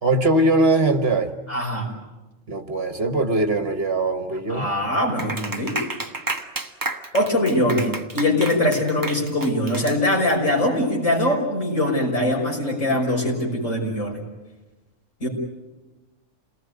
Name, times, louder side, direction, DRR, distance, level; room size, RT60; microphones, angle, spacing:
voice 1, 0.0-1.3 2.5-4.7, right 2 dB, 50° right, 8 dB, 1.5 m, -21 dB
voice 2, 1.5-1.9 4.5-5.8 7.1-14.2 15.2-15.3, left 1 dB, 65° left, -1 dB, 6.3 m, -22 dB
Clapping, 5.2-10.5, right 2 dB, 15° right, 1.1 m, -31 dB
28.5 x 19.0 x 9.4 m, 1.1 s
omnidirectional pair, 1.4 m